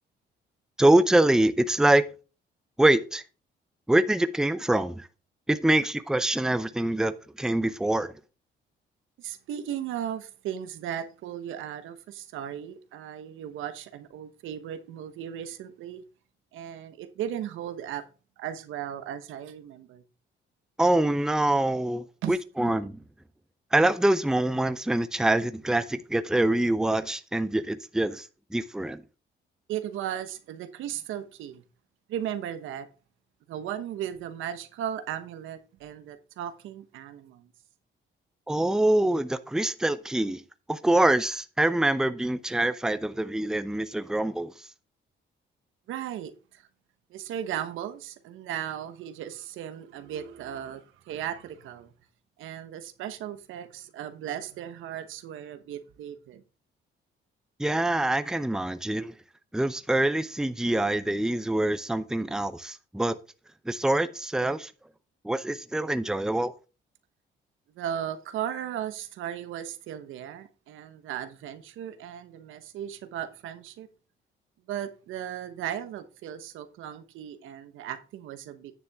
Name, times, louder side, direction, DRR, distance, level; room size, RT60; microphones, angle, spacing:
voice 1, 0.8-2.0 2.8-3.2 3.9-5.1 5.5-8.1 20.8-23.0 23.7-28.3 28.5-29.0 38.5-40.4 40.7-44.5 57.6-59.1 59.5-63.2 63.7-64.7 65.2-66.5, right 1 dB, 5° right, 0.6 m, -25 dB
voice 2, 9.2-16.0 16.5-18.1 18.4-20.0 22.2-22.4 29.7-31.6 32.1-32.9 33.5-37.5 45.9-46.7 47.1-51.9 52.4-56.4 67.7-73.9 74.7-78.7, right 10 dB, 85° right, 1.1 m, -36 dB
9.7 x 6.9 x 3.5 m
cardioid pair, 90°, 20 cm